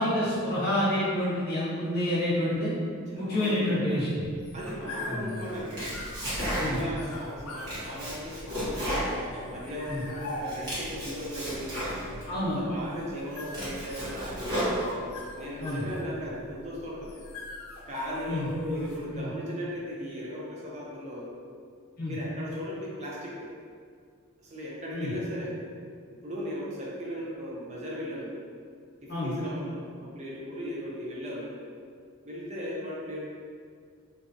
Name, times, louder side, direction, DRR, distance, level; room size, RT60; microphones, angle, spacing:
voice 1, 0.0-2.7 3.1-4.1 5.1-5.4 6.6-6.8 9.9-10.0 12.3-12.6 15.6-15.9 18.3-18.5 19.1-19.3 22.0-22.1 24.9-25.1 29.1-29.3, left 1 dB, 45° left, -8 dB, 0.8 m, -28 dB
voice 2, 3.1-3.9 4.5-5.9 6.5-9.1 9.5-11.8 12.3-14.9 15.4-17.2 17.8-21.3 22.0-23.5 24.4-25.5 26.1-28.3 29.0-31.5 32.2-33.3, equal, 30° right, -5 dB, 0.4 m, -37 dB
sound 1, 4.2-19.2, left 2 dB, 75° left, 0.4 m, -42 dB
Domestic sounds home sounds, 5.5-7.0 7.4-9.9 10.3-12.3 12.8-12.9 13.3-15.3, equal, 50° right, 1.1 m, -33 dB
2.6 x 2.1 x 2.5 m, 2.2 s
head